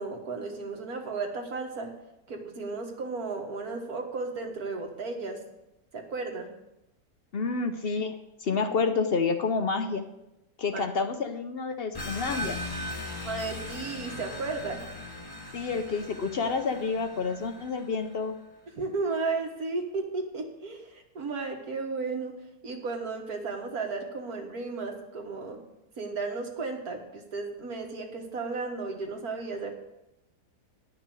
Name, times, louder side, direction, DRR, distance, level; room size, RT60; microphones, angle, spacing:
voice 1, 0.0-1.9 2.3-5.4 5.9-6.5 10.7-10.9 13.2-14.8 18.8-22.3 22.6-25.6 26.0-29.7, right 4 dB, 60° right, 2 dB, 1.9 m, -34 dB
voice 2, 7.3-8.2 8.4-10.0 10.6-12.6 15.5-18.3, left 4 dB, 60° left, 7 dB, 0.6 m, -29 dB
sound 1, 11.9-18.2, left 1 dB, 15° left, 1.0 m, -39 dB
10.5 x 5.9 x 7.6 m, 0.90 s
omnidirectional pair, 1.8 m